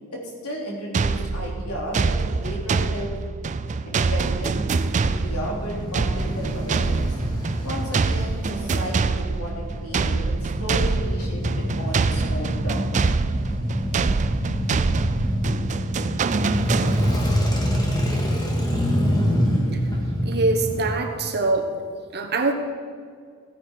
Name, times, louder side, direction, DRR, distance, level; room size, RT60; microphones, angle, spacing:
voice 1, 0.1-3.1 3.8-4.7 5.0-7.1 7.6-13.1, equal, 85° left, -2 dB, 3.3 m, -34 dB
sound 1, 0.9-17.4, right 4 dB, 35° right, 0.4 m, -25 dB
Male speech man speaking / Motorcycle / Idling, 4.9-20.9, equal, 20° left, 2.0 m, -26 dB
voice 2, 20.2-21.8 22.1-22.5, right 3 dB, 50° right, 4 dB, 1.3 m, -23 dB
16.0 x 9.9 x 4.5 m, 2.1 s
head